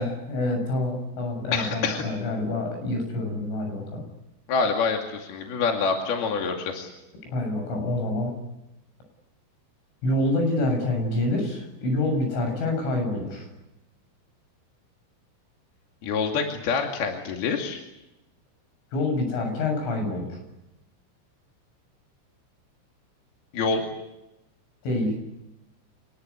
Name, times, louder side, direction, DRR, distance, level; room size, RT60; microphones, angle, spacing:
voice 1, 0.0-4.0 7.3-8.3 10.0-13.5 18.9-20.4 24.8-25.1, left 2 dB, 70° left, 4 dB, 9.6 m, -27 dB
voice 2, 1.5-2.0 4.5-6.9 16.0-17.8 23.5-23.8, left 5 dB, 55° left, 2 dB, 4.0 m, -26 dB
27.5 x 20.0 x 9.7 m, 0.93 s
omnidirectional pair, 5.8 m